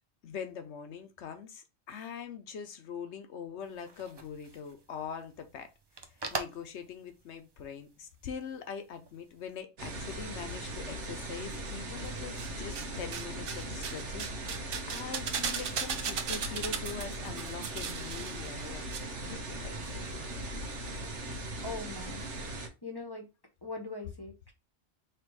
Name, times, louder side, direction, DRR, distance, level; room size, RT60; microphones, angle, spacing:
voice 1, 0.2-5.7 6.3-14.6 14.9-18.8 19.2-19.8 21.4-21.6, left 7 dB, 75° left, 1.1 m, -43 dB
sound 1, 3.6-9.6, right 3 dB, 35° right, 0.4 m, -45 dB
sound 2, 9.8-22.7, right 1 dB, 80° right, 1.3 m, -39 dB
sound 3, 12.0-12.9 13.1-19.0 19.2-19.3, right 7 dB, 60° right, 0.8 m, -37 dB
voice 2, 21.6-22.2 22.8-23.3 23.6-24.5, left 3 dB, 25° left, 0.7 m, -41 dB
3.4 x 3.0 x 4.6 m
omnidirectional pair, 1.2 m